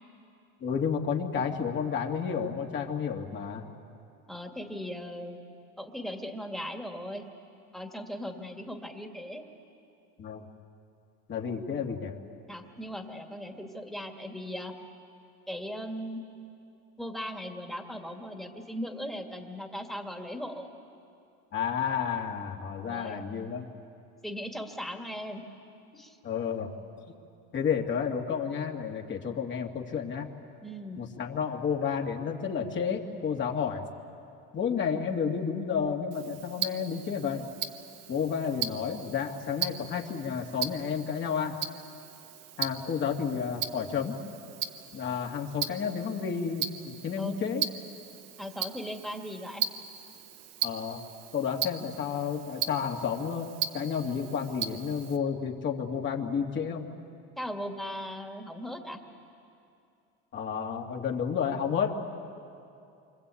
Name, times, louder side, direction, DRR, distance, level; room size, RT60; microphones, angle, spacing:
voice 1, 0.6-3.7 10.2-10.4 11.3-12.1 21.5-23.6 26.2-26.7 27.5-30.3 31.0-33.8 34.5-37.5 38.1-41.6 42.6-44.1 44.9-47.6 50.6-51.0 51.3-53.5 53.7-56.9 60.3-61.9, left 7 dB, 35° left, 1 dB, 2.5 m, -31 dB
voice 2, 4.3-5.4 5.8-7.3 7.7-9.4 12.5-14.7 15.5-16.2 17.0-20.7 22.9-23.3 24.2-25.4 25.9-26.2 30.6-31.0 47.2-47.4 48.4-49.6 57.4-59.0, equal, ahead, 3 dB, 2.2 m, -38 dB
Tick-tock, 36.1-55.2, right 10 dB, 55° right, 1.2 m, -38 dB
27.5 x 25.0 x 8.6 m, 2.6 s
cardioid pair, 130°, 31 cm